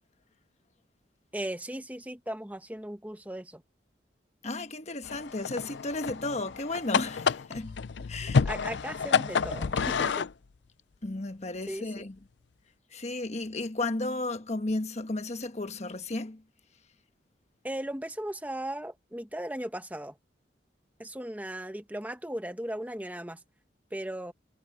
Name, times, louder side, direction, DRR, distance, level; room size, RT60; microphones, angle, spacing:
voice 1, 1.3-3.6 8.2-10.3 11.7-12.1 17.6-20.2 21.0-23.4 23.9-24.3, right 1 dB, 10° right, 1.3 m, -37 dB
voice 2, 4.4-8.4 11.0-12.2 12.9-16.4, left 2 dB, 40° left, 1.2 m, -34 dB
sound 1, 5.0-10.3, left 6 dB, 75° left, 0.5 m, -29 dB
head